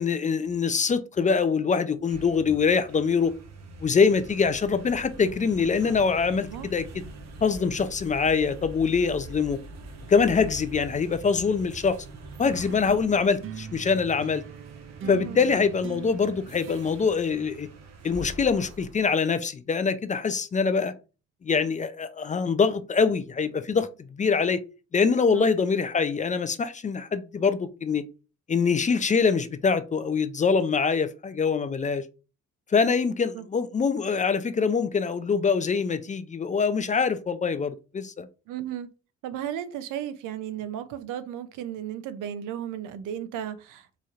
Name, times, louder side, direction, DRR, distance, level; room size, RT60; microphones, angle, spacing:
voice 1, 0.0-3.3 3.8-6.9 7.4-9.6 10.1-12.0 12.4-14.4 15.1-17.7 18.0-20.9 21.4-24.6 24.9-28.0 28.5-32.0 32.7-38.3, left 5 dB, 25° left, 0.4 m, -24 dB
sound 1, 1.9-19.1, right 2 dB, 60° right, 0.9 m, -44 dB
sound 2, 12.6-18.2, right 5 dB, 45° right, 0.5 m, -42 dB
voice 2, 15.0-15.4 25.3-25.5 33.3-33.4 38.5-38.9 39.2-44.0, right 10 dB, 90° right, 0.6 m, -35 dB
4.1 x 3.1 x 2.4 m
cardioid pair, 90°, 30 cm